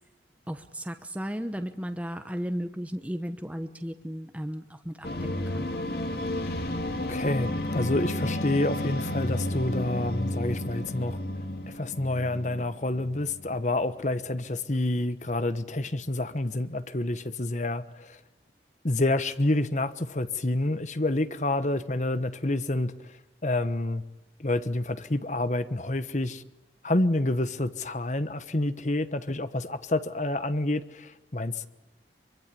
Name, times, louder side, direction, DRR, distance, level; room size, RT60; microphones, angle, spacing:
voice 1, 0.5-5.7, equal, 10° right, 7 dB, 1.1 m, -35 dB
sound 1, 5.0-13.6, left 1 dB, 60° left, 2.6 m, -32 dB
voice 2, 7.1-11.2 11.7-18.2 18.8-22.9 23.4-24.0 24.4-26.4 26.8-31.7, left 2 dB, 40° left, 12 dB, 1.2 m, -28 dB
24.5 x 24.0 x 9.9 m, 0.97 s
head